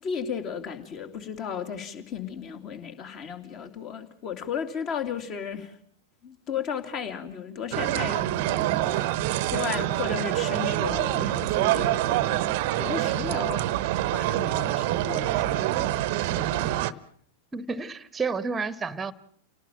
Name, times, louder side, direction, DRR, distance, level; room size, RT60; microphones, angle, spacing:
voice 1, 0.0-5.8 6.2-13.7 14.1-16.9, left 7 dB, 35° left, 3.0 m, -35 dB
sound 1, 7.7-16.9, right 15 dB, 45° right, 0.9 m, -26 dB
voice 2, 17.5-19.1, right 4 dB, 15° right, 1.3 m, -30 dB
29.5 x 18.0 x 7.4 m
figure-of-eight pair, 90°, 0 cm